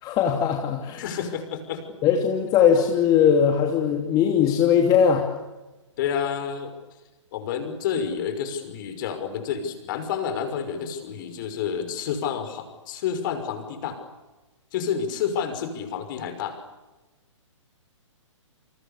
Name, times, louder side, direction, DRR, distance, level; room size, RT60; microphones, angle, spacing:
voice 1, 0.0-1.0 2.0-5.3, left 8 dB, 25° left, 2 dB, 3.1 m, -20 dB
voice 2, 1.0-1.8 6.0-6.7 7.3-14.0 14.7-16.6, left 7 dB, 40° left, 8 dB, 5.9 m, -29 dB
29.0 x 28.5 x 6.9 m, 1.2 s
figure-of-eight pair, 125°, 16 cm